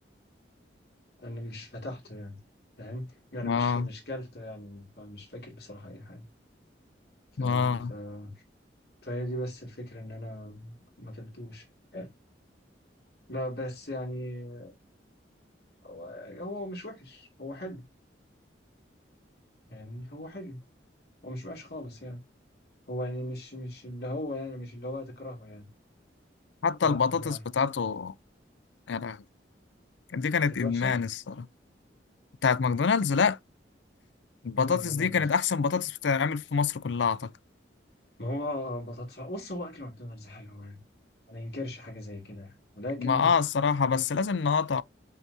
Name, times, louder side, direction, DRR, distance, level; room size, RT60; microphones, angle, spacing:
voice 1, 1.2-2.4 2.8-6.2 7.3-8.3 9.0-11.7 11.9-12.1 13.3-14.7 15.8-17.8 19.7-20.6 21.2-22.2 22.9-25.7 26.8-27.4 30.5-30.9 34.5-35.3 38.2-40.8 41.3-43.3, left 1 dB, 55° left, 2.6 m, -38 dB
voice 2, 3.4-3.9 7.4-7.9 26.6-28.1 28.9-29.2 30.1-31.5 32.4-33.4 34.4-37.3 43.0-44.8, left 5 dB, 80° left, 0.5 m, -26 dB
7.5 x 5.7 x 2.7 m
head